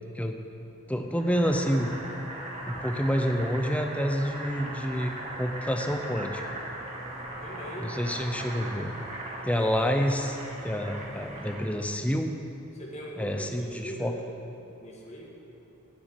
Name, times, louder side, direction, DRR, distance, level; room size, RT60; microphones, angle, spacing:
voice 1, 0.9-1.9 2.7-6.4 7.8-8.9 9.4-10.4 10.6-12.3 13.2-14.1, equal, 5° left, 4 dB, 0.7 m, -28 dB
Boiling, 1.2-11.8, right 1 dB, 30° right, 2.0 m, -39 dB
voice 2, 7.4-8.4 12.7-14.4 14.8-15.3, right 1 dB, 30° left, -2 dB, 1.7 m, -41 dB
9.3 x 8.3 x 9.2 m, 2.9 s
head